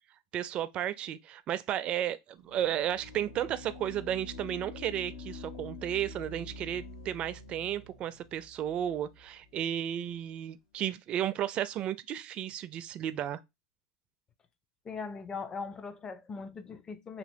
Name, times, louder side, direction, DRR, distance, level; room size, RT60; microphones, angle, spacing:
voice 1, 0.3-13.4, right 11 dB, 40° right, 0.4 m, -33 dB
sound 1, 2.4-9.6, left 3 dB, 75° left, 0.8 m, -47 dB
voice 2, 14.8-17.2, left 5 dB, 25° left, 0.5 m, -40 dB
2.9 x 2.9 x 2.6 m
hypercardioid pair, 100°, 3 cm